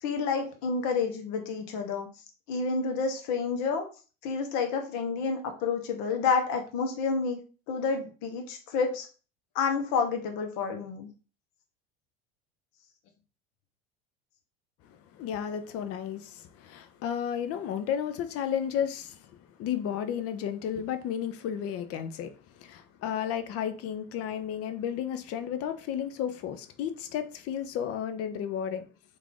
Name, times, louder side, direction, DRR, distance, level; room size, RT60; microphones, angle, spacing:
voice 1, 0.0-2.1 2.5-3.9 4.2-7.4 7.7-9.1 9.5-11.1, left 5 dB, 65° left, 1.0 m, -29 dB
voice 2, 14.9-19.3 19.6-28.9, left 9 dB, 50° left, 0.6 m, -33 dB
3.1 x 2.5 x 3.6 m
supercardioid pair, 95°, 30 cm